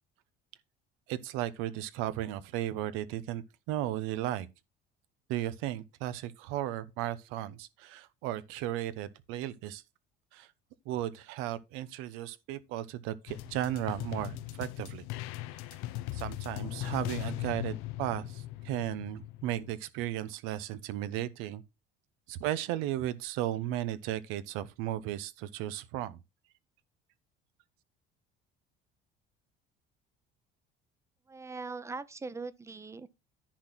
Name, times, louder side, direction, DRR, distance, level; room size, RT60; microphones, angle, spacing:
voice 1, 1.1-4.5 5.3-9.8 10.3-10.5 10.9-15.0 16.1-21.6 22.3-26.2, right 13 dB, 90° right, 0.9 m, -35 dB
sound 1, 13.3-19.8, left 15 dB, 90° left, 0.7 m, -39 dB
voice 2, 31.3-33.1, right 4 dB, 15° right, 0.7 m, -41 dB
10.0 x 4.2 x 6.1 m
cardioid pair, 120°, 21 cm